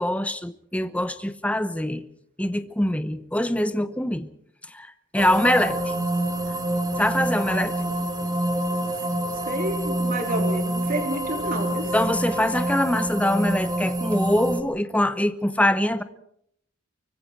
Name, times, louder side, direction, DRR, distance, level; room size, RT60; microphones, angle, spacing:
voice 1, 0.0-2.1 2.4-4.3 4.7-4.9 5.1-5.8 7.0-7.7 11.9-16.0, left 1 dB, 5° left, 0.8 m, -23 dB
sound 1, 5.2-14.6, right 1 dB, 20° right, 1.8 m, -27 dB
voice 2, 9.3-11.9, right 1 dB, 45° right, 3.1 m, -30 dB
24.5 x 24.0 x 4.6 m
head